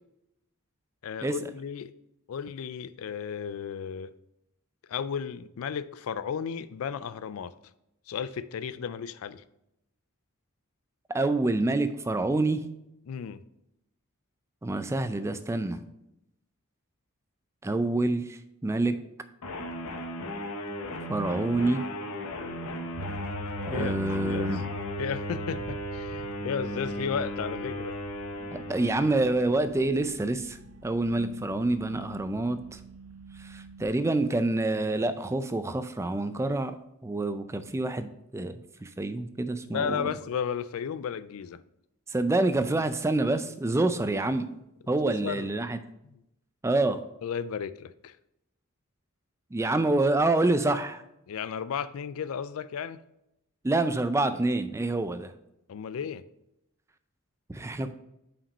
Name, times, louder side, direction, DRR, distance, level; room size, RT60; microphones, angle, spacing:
voice 1, 1.0-1.9 2.3-4.1 4.9-7.5 8.1-9.4 13.1-13.4 23.7-24.0 24.2-24.6 25.0-28.0 39.6-41.6 44.9-45.5 46.0-46.2 47.2-48.2 49.8-49.9 51.3-53.0 55.7-56.2, left 7 dB, 70° left, 16 dB, 0.4 m, -34 dB
voice 2, 11.1-12.6 14.6-15.8 17.6-19.0 21.1-21.8 23.7-24.6 28.5-30.6 30.8-32.8 33.5-36.8 37.0-40.1 42.1-44.5 44.9-45.8 46.6-47.0 49.5-51.0 53.6-55.3 57.5-57.9, right 2 dB, 15° right, 11 dB, 0.3 m, -27 dB
sound 1, 19.4-29.7, equal, 90° left, 0.9 m, -36 dB
sound 2, 22.9-33.9, right 1 dB, 80° right, 0.6 m, -43 dB
5.8 x 5.1 x 5.3 m, 0.84 s
head